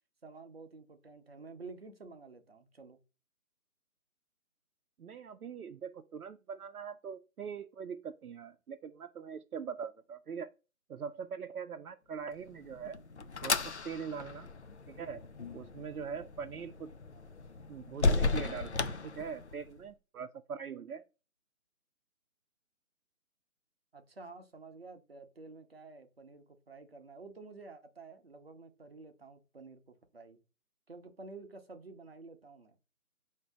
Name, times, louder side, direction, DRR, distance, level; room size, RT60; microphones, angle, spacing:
voice 1, 0.2-3.0 23.9-30.4 30.9-32.8, right 3 dB, 45° right, 0.7 m, -51 dB
voice 2, 5.0-10.5 10.9-13.0 13.4-14.5 14.9-15.2 15.5-16.9 17.7-21.0, right 6 dB, 80° right, 0.6 m, -42 dB
sound 1, 12.4-19.8, left 3 dB, 50° left, 0.5 m, -35 dB
4.9 x 2.7 x 3.4 m
figure-of-eight pair, 165°, 43 cm